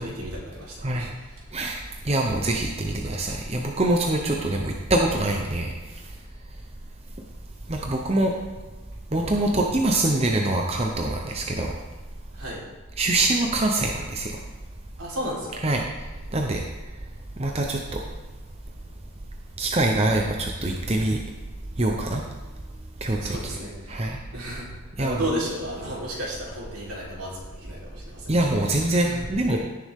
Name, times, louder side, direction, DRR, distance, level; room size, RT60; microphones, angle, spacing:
voice 1, 0.0-1.4 12.3-12.6 15.0-15.7 23.2-24.7 25.0-29.2, right 1 dB, 80° right, -5 dB, 3.9 m, -34 dB
voice 2, 1.5-5.7 7.7-8.3 9.1-11.7 13.0-14.3 15.6-15.8 16.3-16.6 17.4-17.8 19.6-21.2 21.8-22.2 23.0-23.5 23.9-24.2 25.0-25.2 28.3-29.6, right 2 dB, 30° right, 1 dB, 0.8 m, -24 dB
16.5 x 7.0 x 3.7 m, 1.3 s
head